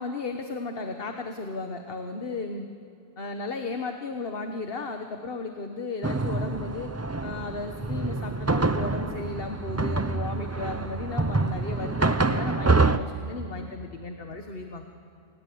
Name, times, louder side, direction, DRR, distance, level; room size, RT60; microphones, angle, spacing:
voice 1, 0.0-2.7 3.2-6.9 7.2-14.8, left 3 dB, 60° left, 5 dB, 1.5 m, -35 dB
sound 1, 6.0-13.0, right 3 dB, 15° right, 0.6 m, -26 dB
29.5 x 22.0 x 8.6 m, 2.7 s
omnidirectional pair, 1.1 m